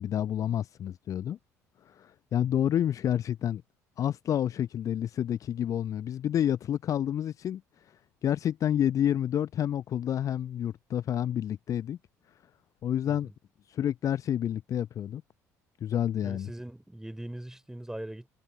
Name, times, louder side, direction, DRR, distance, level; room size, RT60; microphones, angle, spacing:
voice 1, 0.0-1.4 1.9-3.6 4.0-7.6 8.2-12.0 12.8-13.3 13.7-15.2 15.8-16.5, left 10 dB, 40° left, 0.7 m, -29 dB
voice 2, 16.2-18.3, right 1 dB, 5° right, 3.3 m, -41 dB
figure-of-eight pair, 55°, 8 cm